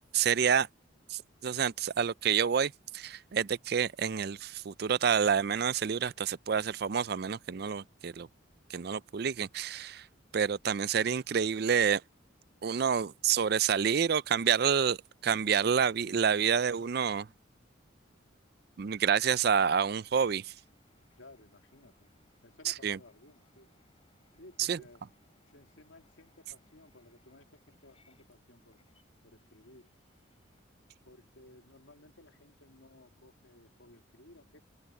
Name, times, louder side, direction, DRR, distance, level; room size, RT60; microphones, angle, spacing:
voice 1, 0.1-0.7 1.1-8.3 8.7-10.1 10.3-12.0 12.6-17.3 18.8-20.5 22.7-23.0 24.6-24.8, right 7 dB, 50° right, 0.4 m, -28 dB
sound 1, 19.5-31.5, left 3 dB, 30° left, 6.3 m, -72 dB
voice 2, 21.1-22.1 22.4-23.7 24.3-25.0 25.5-28.8 29.2-29.9 31.0-34.6, left 2 dB, 75° left, 3.0 m, -57 dB
head